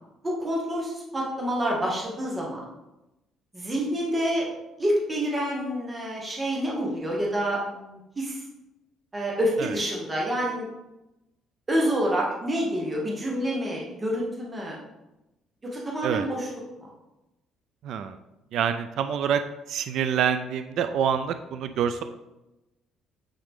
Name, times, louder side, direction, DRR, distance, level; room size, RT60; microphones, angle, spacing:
voice 1, 0.2-2.6 3.5-4.5 4.8-8.4 9.1-10.7 11.7-14.8 15.6-16.5, equal, 15° right, -3 dB, 1.1 m, -27 dB
voice 2, 17.8-18.2 18.5-19.4 19.7-22.0, right 8 dB, 60° right, 9 dB, 0.3 m, -26 dB
8.8 x 3.8 x 3.6 m, 0.96 s
cardioid pair, 160°, 0 cm